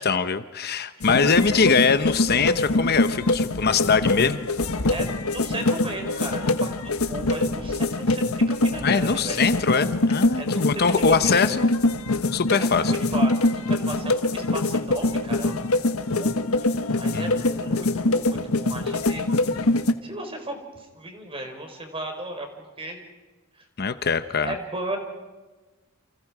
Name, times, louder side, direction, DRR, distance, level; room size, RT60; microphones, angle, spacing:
voice 1, 0.0-4.4 8.8-11.7 12.3-12.9 17.1-17.4 23.8-24.5, left 5 dB, 50° left, 11 dB, 0.8 m, -22 dB
sound 1, 1.0-19.9, left 2 dB, 90° left, 1.4 m, -24 dB
voice 2, 4.9-9.4 10.4-11.6 12.5-15.8 16.1-19.3 20.0-22.5 22.8-23.0 24.4-25.0, right 1 dB, 25° right, 4 dB, 4.7 m, -35 dB
30.0 x 29.0 x 4.9 m, 1.3 s
head